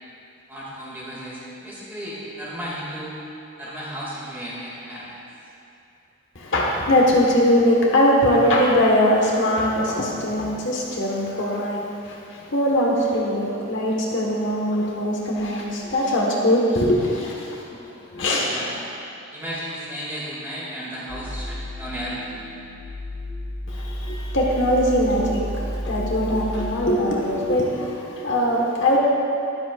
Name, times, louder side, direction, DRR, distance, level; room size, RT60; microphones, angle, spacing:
voice 1, 0.5-3.2 3.6-5.2 18.5-18.8 19.3-22.5, equal, 10° right, -7 dB, 2.1 m, -34 dB
voice 2, 6.3-17.8 18.1-18.5 23.7-29.0, left 1 dB, 55° left, -3 dB, 1.4 m, -21 dB
sound 1, 21.1-26.7, equal, 15° left, 2.4 m, -32 dB
13.0 x 12.0 x 2.5 m, 2.7 s
head